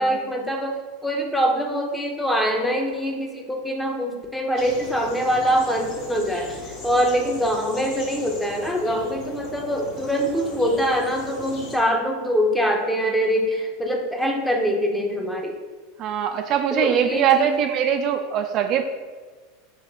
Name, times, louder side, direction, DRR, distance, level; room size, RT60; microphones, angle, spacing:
voice 1, 0.0-15.6 16.7-17.6, equal, 5° left, 1 dB, 0.8 m, -24 dB
sound 1, 4.6-11.8, left 2 dB, 45° left, 1.1 m, -38 dB
voice 2, 16.0-18.8, right 9 dB, 45° right, 5 dB, 0.4 m, -22 dB
3.7 x 3.2 x 4.0 m, 1.4 s
hypercardioid pair, 85°, 0 cm